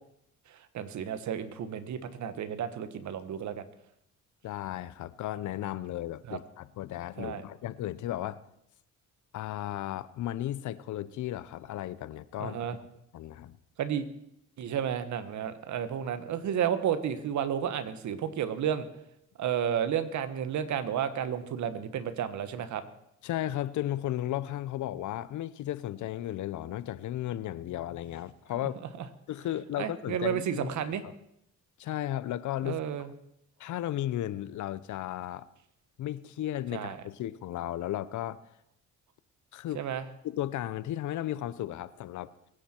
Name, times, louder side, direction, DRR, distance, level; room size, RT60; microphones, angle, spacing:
voice 1, 0.5-3.6 6.3-6.4 7.2-7.4 12.4-12.8 13.8-14.1 14.6-18.9 19.4-22.8 29.8-31.0 32.6-33.1 36.7-37.0 39.7-40.0, right 9 dB, 70° right, 11 dB, 1.4 m, -32 dB
voice 2, 4.4-8.4 9.3-12.6 13.1-13.6 23.2-28.8 29.3-31.1 31.8-32.8 33.6-35.5 36.0-38.4 39.5-39.8 40.2-42.3, left 13 dB, 75° left, 17 dB, 0.8 m, -35 dB
22.5 x 10.0 x 4.5 m, 0.78 s
cardioid pair, 90°, 30 cm